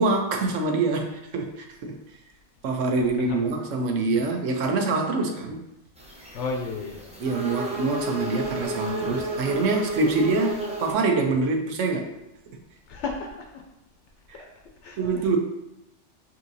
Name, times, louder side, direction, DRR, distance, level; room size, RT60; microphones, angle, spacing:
voice 1, 0.0-2.0 2.6-5.6 7.2-12.2 15.0-15.4, right 3 dB, 80° right, 3 dB, 1.0 m, -25 dB
sound 1, 6.0-10.9, right 1 dB, 10° right, 0.5 m, -32 dB
voice 2, 6.3-7.1 12.9-13.6 14.3-14.5 14.8-15.2, left 4 dB, 75° left, 2 dB, 0.9 m, -33 dB
5.6 x 2.7 x 2.7 m, 0.87 s
omnidirectional pair, 1.3 m